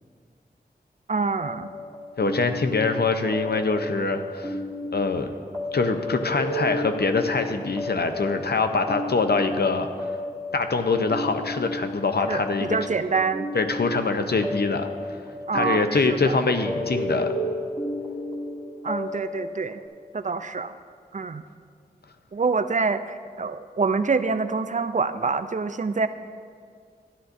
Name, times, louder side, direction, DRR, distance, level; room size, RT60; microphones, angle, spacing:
voice 1, 1.1-1.7 12.3-13.5 15.5-16.4 18.8-19.8 20.1-20.8 21.1-21.4 22.3-26.1, right 4 dB, 45° right, 10 dB, 0.4 m, -26 dB
sound 1, 1.4-19.9, left 1 dB, 25° left, 1.9 m, -33 dB
voice 2, 2.2-4.6 4.9-5.3 5.7-9.9 10.5-12.7 13.5-15.2 15.5-17.3, left 4 dB, 70° left, 6 dB, 0.7 m, -24 dB
13.0 x 11.0 x 2.6 m, 2.1 s
wide cardioid pair, 55°, 17 cm